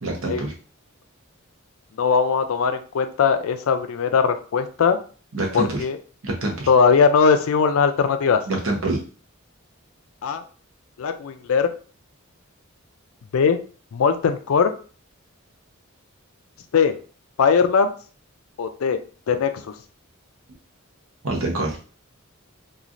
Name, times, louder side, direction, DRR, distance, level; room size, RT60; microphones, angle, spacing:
voice 1, 0.0-0.5 5.3-5.8 6.2-6.7 8.5-9.0 21.2-21.8, right 2 dB, 70° right, 0 dB, 0.9 m, -25 dB
voice 2, 2.0-5.0 5.5-6.0 6.7-8.4 10.2-10.4 11.0-11.7 13.3-13.6 13.9-14.7 16.7-17.0 17.4-17.9 18.6-19.0 19.3-19.7, left 6 dB, 80° left, 8 dB, 0.4 m, -19 dB
3.0 x 2.4 x 2.5 m, 0.39 s
head